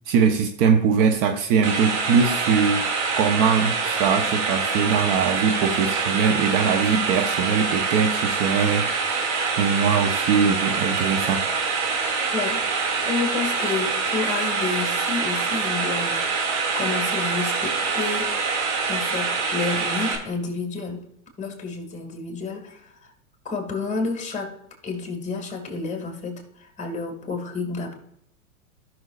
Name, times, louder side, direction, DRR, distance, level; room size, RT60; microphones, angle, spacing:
voice 1, 0.1-2.9 3.2-8.9 9.6-11.5, right 6 dB, 40° right, 0.9 m, -21 dB
sound 1, 1.6-20.2, right 4 dB, 60° right, 2.3 m, -25 dB
voice 2, 12.3-12.6 13.0-16.3 16.7-18.3 18.9-21.1 21.4-23.1 23.4-24.6 24.8-27.9, left 4 dB, 15° left, 2.4 m, -30 dB
16.0 x 6.3 x 2.4 m
hypercardioid pair, 110°, 41 cm